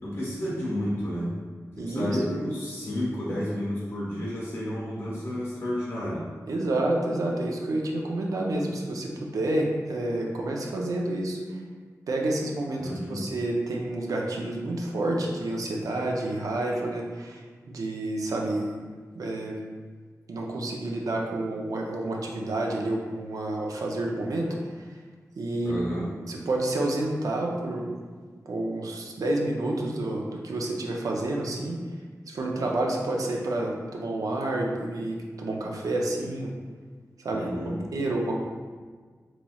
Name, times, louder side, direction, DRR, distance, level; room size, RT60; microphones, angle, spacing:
voice 1, 0.0-1.3 1.8-6.2 12.8-13.2 25.6-26.1 37.3-37.8, equal, 45° left, -7 dB, 1.2 m, -31 dB
voice 2, 1.8-2.2 6.5-11.6 12.1-12.8 13.1-18.8 19.1-19.6 20.3-24.5 24.8-25.0 25.4-25.7 26.3-27.9 28.5-31.8 32.3-36.5 37.2-37.5 37.9-38.3, right 2 dB, 80° right, 0 dB, 0.5 m, -29 dB
4.0 x 3.0 x 2.3 m, 1.5 s
wide cardioid pair, 115°, 6 cm